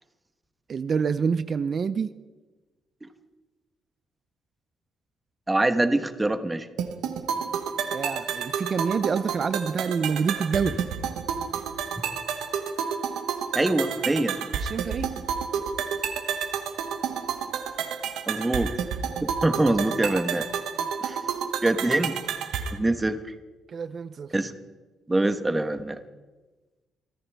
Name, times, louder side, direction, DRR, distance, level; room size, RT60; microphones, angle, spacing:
voice 1, 0.7-2.1 7.9-10.8 14.5-15.1 20.8-20.9 23.7-24.3, right 6 dB, 50° right, 14 dB, 0.6 m, -27 dB
voice 2, 5.5-6.7 13.5-14.4 18.3-18.7 19.4-20.5 21.0-21.2 21.6-22.2 22.7-23.2 24.3-24.5 25.1-26.0, right 2 dB, 15° right, 9 dB, 1.2 m, -24 dB
sound 1, 6.8-22.8, right 7 dB, 80° right, 1.2 m, -30 dB
24.5 x 13.5 x 3.5 m, 1.2 s
cardioid pair, 90°, 0 cm